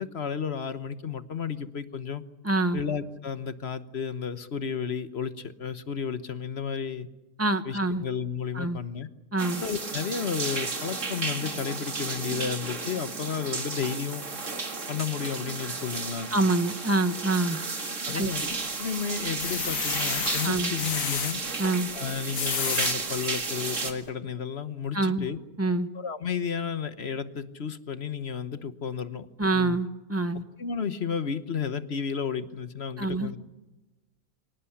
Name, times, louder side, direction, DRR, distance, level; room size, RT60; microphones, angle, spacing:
voice 1, 0.0-2.2 2.7-7.1 7.6-9.1 9.6-14.2 14.9-16.3 18.1-18.5 18.8-21.4 21.9-25.4 25.9-29.3 29.5-29.8 30.6-33.4, left 7 dB, 50° left, 12 dB, 1.2 m, -32 dB
voice 2, 2.4-2.8 7.4-8.0 8.5-8.8 9.3-9.6 16.3-17.6 18.1-18.3 20.4-20.7 21.6-21.9 24.9-25.3 25.6-25.9 29.4-30.4 33.0-33.3, right 2 dB, 10° right, 11 dB, 1.1 m, -26 dB
sound 1, 9.4-23.9, right 4 dB, 55° right, 2.5 m, -33 dB
sound 2, 18.1-18.7 19.2-21.3 22.1-23.0 23.6-23.7 24.0-24.1, left 6 dB, 70° left, 1.8 m, -31 dB
24.0 x 19.5 x 10.0 m, 1.0 s
omnidirectional pair, 1.5 m